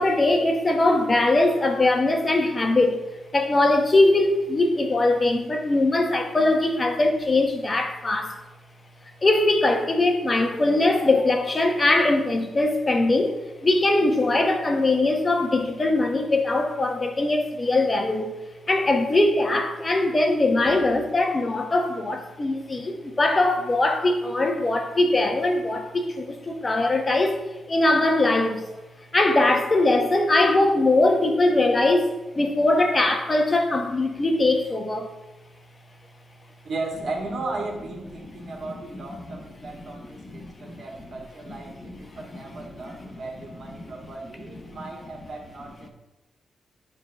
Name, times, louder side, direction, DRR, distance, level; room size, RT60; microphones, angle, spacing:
voice 1, 0.0-3.0 3.3-8.4 9.2-18.3 18.7-28.7 29.1-35.1 38.4-38.5 40.2-40.8 43.8-43.9, left 2 dB, 25° left, 1.2 m, -21 dB
voice 2, 36.6-45.9, right 3 dB, 55° right, 2.4 m, -36 dB
9.8 x 3.9 x 6.4 m
cardioid pair, 115°, 0 cm